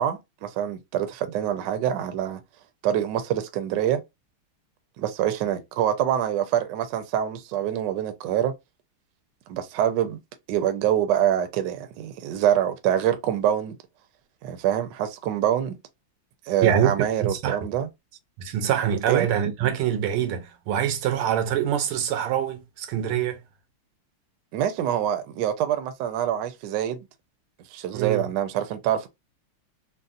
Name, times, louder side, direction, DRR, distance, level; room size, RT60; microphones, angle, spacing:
voice 1, 0.0-2.4 2.8-4.0 5.0-8.5 9.5-10.2 10.5-13.8 14.4-15.7 16.5-17.9 19.1-19.3 24.5-27.0 27.7-29.1, right 10 dB, 70° right, 1.1 m, -25 dB
voice 2, 16.6-17.6 18.4-23.4 27.9-28.3, right 9 dB, 90° right, 1.6 m, -24 dB
4.0 x 2.1 x 2.4 m
omnidirectional pair, 2.3 m